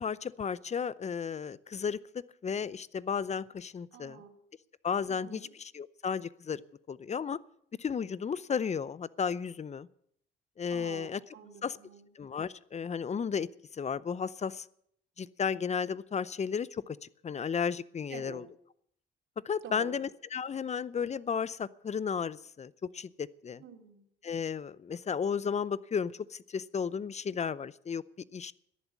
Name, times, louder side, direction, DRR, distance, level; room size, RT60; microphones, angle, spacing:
voice 1, 0.0-2.0 2.4-4.2 4.8-6.6 6.9-7.4 7.8-9.9 10.6-11.2 11.6-11.8 12.2-14.7 15.2-18.4 19.4-23.6 24.2-28.0 28.3-28.5, left 6 dB, 35° left, 19 dB, 0.6 m, -34 dB
voice 2, 3.9-4.3 5.1-5.5 10.7-12.1 18.1-18.4 19.6-19.9 23.6-24.0, right 7 dB, 75° right, 2 dB, 3.5 m, -48 dB
13.5 x 11.0 x 8.3 m, 0.69 s
cardioid pair, 90°, 20 cm